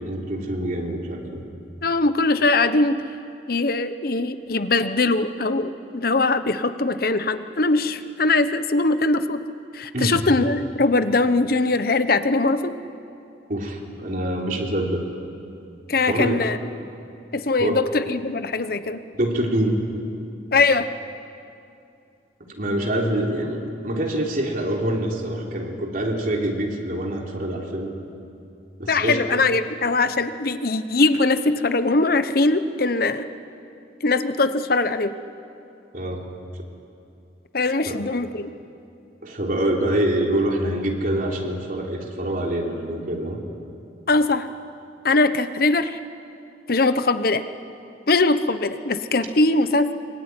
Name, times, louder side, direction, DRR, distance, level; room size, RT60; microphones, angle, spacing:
voice 1, 0.0-1.4 9.9-10.2 13.5-15.0 16.0-16.4 17.6-17.8 19.1-19.8 22.5-27.9 28.8-29.4 35.9-36.3 37.9-38.0 39.2-43.4, right 1 dB, 50° right, 0 dB, 3.7 m, -25 dB
voice 2, 1.8-3.0 3.5-9.4 9.7-12.7 15.9-16.6 17.3-19.0 20.5-20.9 28.9-33.3 34.0-35.1 37.5-38.5 44.1-44.5 45.0-46.0 46.7-47.5 48.1-49.9, left 3 dB, 55° left, 11 dB, 1.0 m, -21 dB
24.0 x 23.0 x 9.7 m, 2.6 s
head